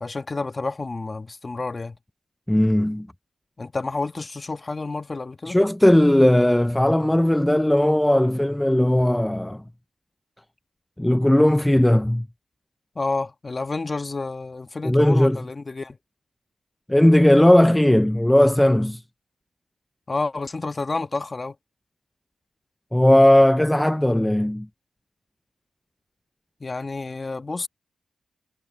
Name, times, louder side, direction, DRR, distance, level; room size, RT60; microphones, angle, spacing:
voice 1, 0.0-2.0 3.6-5.6 12.9-16.0 20.1-21.5 26.6-27.7, left 3 dB, 30° left, 1.4 m, -29 dB
voice 2, 2.5-3.1 5.5-9.6 11.0-12.3 14.8-15.4 16.9-19.0 22.9-24.7, left 1 dB, 5° left, 0.4 m, -17 dB
cardioid pair, 90°, 0 cm